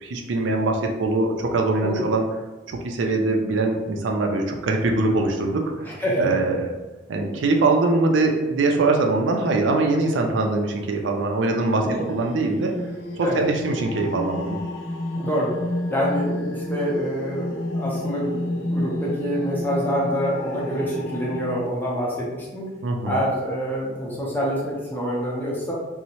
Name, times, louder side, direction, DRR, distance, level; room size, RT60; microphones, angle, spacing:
voice 1, 0.0-2.3 2.7-5.9 6.2-6.8 7.1-12.7 13.2-14.6 22.8-23.2, right 3 dB, 80° right, 2 dB, 0.4 m, -22 dB
voice 2, 5.8-6.4 11.8-12.1 13.2-13.4 15.2-15.5 15.9-22.6 23.1-25.7, equal, 10° left, -5 dB, 0.6 m, -26 dB
sound 1, 11.8-21.7, left 1 dB, 75° left, 0.4 m, -31 dB
2.7 x 2.0 x 2.8 m, 1.1 s
head